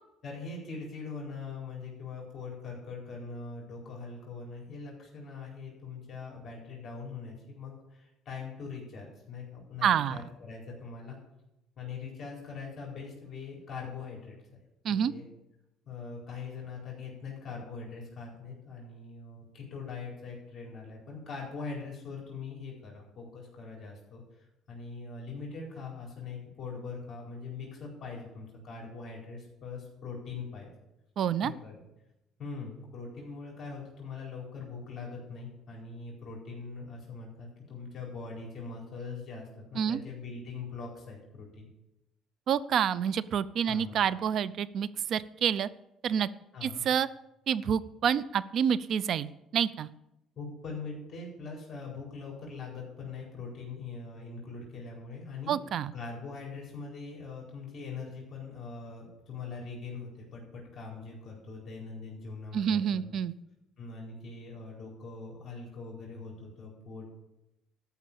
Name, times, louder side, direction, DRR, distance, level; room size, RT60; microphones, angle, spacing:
voice 1, 0.2-11.2 11.8-14.4 14.9-15.2 15.9-24.2 24.7-30.7 31.4-31.8 32.4-41.7 43.7-44.0 46.5-46.8 50.4-55.5 55.9-63.1 63.8-67.1, left 4 dB, 40° left, -2 dB, 4.4 m, -42 dB
voice 2, 9.8-10.2 14.8-15.1 31.2-31.5 39.8-40.0 42.5-45.7 46.0-46.3 46.6-47.1 47.5-49.9 55.5-55.9 62.5-63.3, right 8 dB, 55° right, 18 dB, 0.5 m, -28 dB
13.0 x 6.0 x 8.6 m, 0.90 s
cardioid pair, 115°, 0 cm